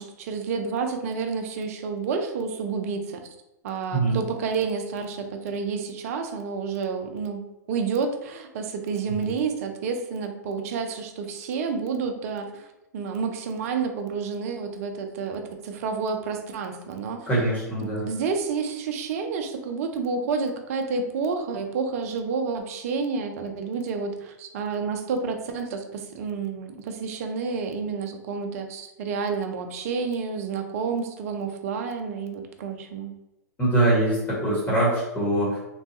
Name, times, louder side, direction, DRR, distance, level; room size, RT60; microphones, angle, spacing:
voice 1, 0.0-3.2 3.6-7.4 7.7-17.3 17.8-33.1, right 5 dB, 55° right, 5 dB, 0.5 m, -29 dB
voice 2, 17.3-18.1 33.6-35.7, right 2 dB, 20° left, -6 dB, 1.2 m, -23 dB
3.0 x 2.2 x 2.7 m, 0.97 s
hypercardioid pair, 105°, 9 cm